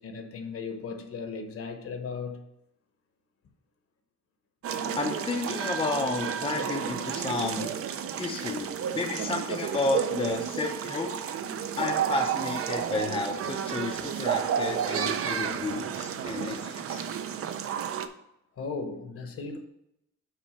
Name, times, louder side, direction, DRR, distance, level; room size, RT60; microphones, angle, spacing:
voice 1, 0.0-2.4 8.0-8.1 18.6-19.6, left 4 dB, 45° left, 0.9 m, -36 dB
sound 1, 4.6-18.1, right 8 dB, 45° right, 0.5 m, -31 dB
voice 2, 5.0-7.7 8.2-11.2 11.8-17.1 17.5-17.6, left 3 dB, 15° left, 0.5 m, -32 dB
5.9 x 4.4 x 5.6 m
cardioid pair, 170°, 31 cm